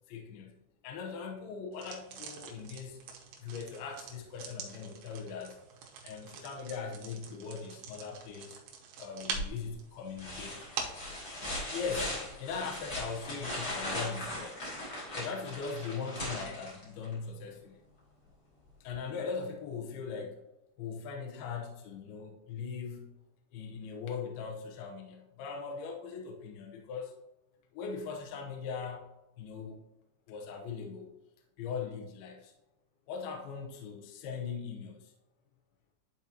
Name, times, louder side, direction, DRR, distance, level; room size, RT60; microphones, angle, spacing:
voice 1, 0.1-0.5 0.8-3.0 3.4-5.6 6.0-8.6 9.0-10.6 11.7-14.6 15.2-17.8 18.8-20.4 20.8-23.1 23.5-27.1 27.7-29.1 29.4-29.8 30.3-31.1 31.6-32.5 33.1-35.1, left 5 dB, 75° left, 1 dB, 2.3 m, -40 dB
sound 1, 1.7-11.1, right 6 dB, 75° right, 2.4 m, -45 dB
sound 2, 9.3-9.7 10.2-17.1 18.9-19.0, left 1 dB, 40° left, 1.4 m, -39 dB
12.0 x 4.5 x 2.8 m, 0.94 s
omnidirectional pair, 5.6 m